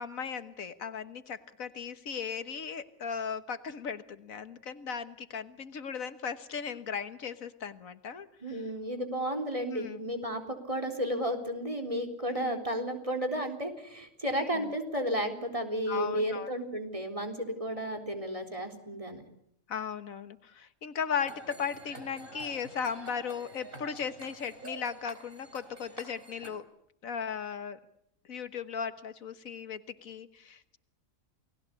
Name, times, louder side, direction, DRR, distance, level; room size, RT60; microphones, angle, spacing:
voice 1, 0.0-8.6 9.7-10.0 12.3-12.6 14.3-14.7 15.9-16.5 19.7-26.6 27.0-27.8 28.3-30.8, left 6 dB, 85° left, 12 dB, 1.8 m, -37 dB
voice 2, 8.4-19.2, equal, 25° right, 4 dB, 4.0 m, -33 dB
sound 1, 21.2-26.6, right 2 dB, 40° right, 3.9 m, -48 dB
29.5 x 19.5 x 8.3 m, 0.76 s
omnidirectional pair, 1.4 m